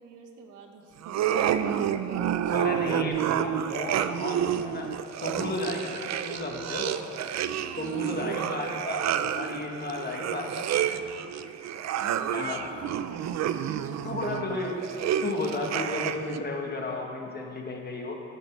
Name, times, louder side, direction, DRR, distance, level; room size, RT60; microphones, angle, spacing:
voice 1, 0.0-1.7 2.4-2.6 7.2-9.2 11.3-11.4 11.9-14.8 15.9-16.0 16.9-17.0, right 5 dB, 90° right, 3 dB, 1.4 m, -47 dB
sound 1, 1.0-16.4, right 9 dB, 65° right, 0.6 m, -29 dB
voice 2, 2.5-4.9 5.2-7.0 7.8-11.0 12.3-12.7 14.0-14.9 15.2-18.2, left 2 dB, 35° left, 0 dB, 2.0 m, -33 dB
11.0 x 8.9 x 6.6 m, 2.6 s
cardioid pair, 90°, 30 cm